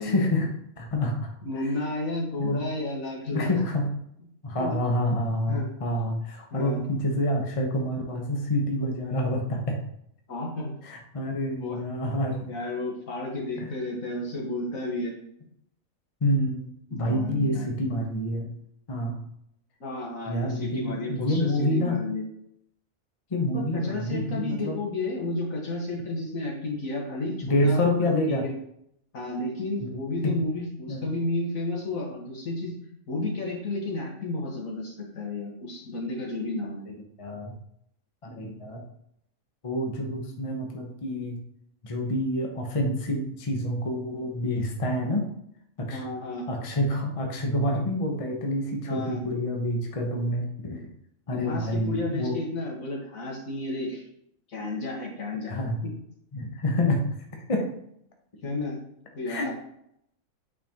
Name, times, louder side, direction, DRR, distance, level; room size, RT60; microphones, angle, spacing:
voice 1, 0.0-1.7 2.4-2.6 3.3-3.9 4.4-9.8 10.8-12.5 13.6-13.7 16.2-16.6 16.9-18.5 18.9-19.2 20.3-22.0 23.3-24.8 27.4-28.4 29.8-29.9 30.2-30.3 30.9-31.1 37.2-37.5 38.2-38.8 39.6-41.4 41.8-45.3 45.8-46.0 46.5-50.8 51.3-52.4 55.5-55.8 56.3-57.0 57.5-57.6 59.3-59.5, left 1 dB, 30° left, 2 dB, 0.9 m, -27 dB
voice 2, 1.4-3.5 4.6-4.8 5.5-5.7 6.5-6.8 10.3-10.8 11.6-11.8 12.5-15.1 16.9-17.7 19.8-22.2 23.5-28.5 29.1-32.7 33.1-36.8 44.9-45.2 45.9-46.5 48.9-49.2 51.3-54.0 54.5-55.5 55.8-55.9 57.5-57.6 58.4-58.8 59.1-59.5, left 2 dB, 65° left, -2 dB, 1.9 m, -32 dB
8.9 x 4.4 x 2.9 m, 0.74 s
omnidirectional pair, 1.5 m